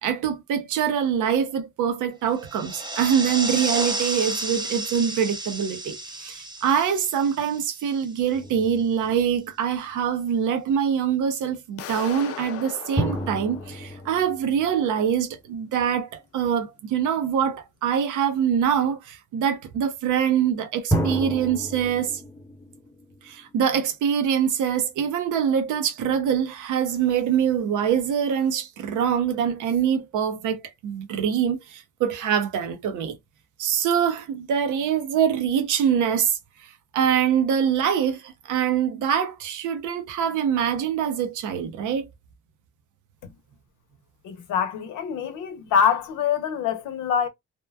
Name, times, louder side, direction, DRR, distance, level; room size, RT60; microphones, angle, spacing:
voice 1, 0.0-22.2 23.2-33.2 33.6-42.1, right 8 dB, 80° right, 0.7 m, -24 dB
sound 1, 2.4-8.2, right 2 dB, 15° right, 0.5 m, -32 dB
sound 2, 8.3-10.0 13.0-15.7 20.9-23.9, right 1 dB, 10° left, 0.9 m, -31 dB
sound 3, 11.8-14.6, left 10 dB, 50° left, 0.5 m, -39 dB
voice 2, 44.2-47.3, left 7 dB, 90° left, 0.8 m, -24 dB
2.9 x 2.1 x 2.2 m
cardioid pair, 90°, 30 cm